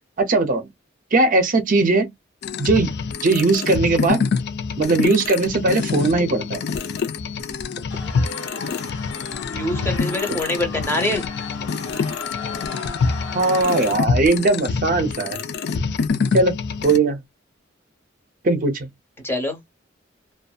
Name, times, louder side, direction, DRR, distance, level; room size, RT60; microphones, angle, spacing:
voice 1, 0.2-0.7 1.1-2.1 2.6-2.9 3.2-4.2 4.8-6.6 13.3-15.4 16.3-16.6 16.8-17.2 18.4-18.9, right 3 dB, 45° right, 0.6 m, -19 dB
sound 1, 2.4-17.0, left 5 dB, 60° left, 0.4 m, -26 dB
sound 2, 7.9-13.9, left 4 dB, 80° left, 1.1 m, -35 dB
voice 2, 9.5-11.2 19.2-19.6, left 1 dB, 10° left, 0.8 m, -24 dB
2.6 x 2.3 x 2.3 m
head